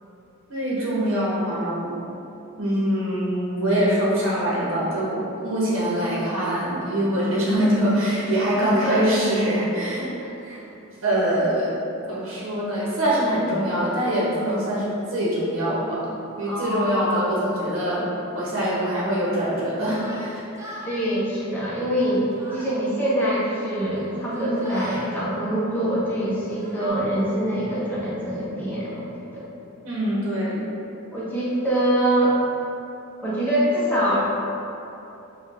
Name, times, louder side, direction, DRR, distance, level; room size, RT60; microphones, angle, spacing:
voice 1, 0.5-1.9 2.6-10.0 10.5-10.6 11.0-11.8 12.1-16.1 16.4-20.4 29.8-30.7, equal, 65° right, -7 dB, 1.0 m, -24 dB
voice 2, 8.5-9.1 9.9-10.3 13.3-13.5 16.4-17.3 20.8-29.4 31.1-32.4 33.2-34.2, right 1 dB, 10° left, -9 dB, 0.9 m, -24 dB
Yell, 20.0-20.9 21.8-22.8 23.8-25.1 26.0-26.9, equal, 15° right, 0.5 m, -40 dB
5.2 x 2.4 x 3.4 m, 2.8 s
head